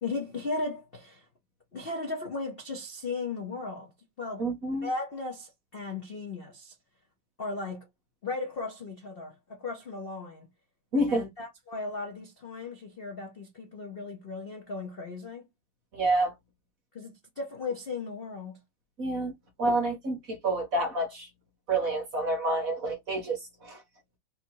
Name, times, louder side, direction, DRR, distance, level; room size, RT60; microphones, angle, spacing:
voice 1, 0.0-1.3 1.7-3.9 4.2-4.5 4.8-6.7 7.4-7.9 8.2-10.5 11.1-15.4 16.9-18.6, left 3 dB, 60° left, 0.5 m, -36 dB
voice 2, 4.4-4.9 10.9-11.3 15.9-16.3 19.0-19.3 19.6-21.3 21.7-23.8, right 2 dB, 50° right, 1.1 m, -28 dB
3.6 x 2.8 x 4.5 m
omnidirectional pair, 2.4 m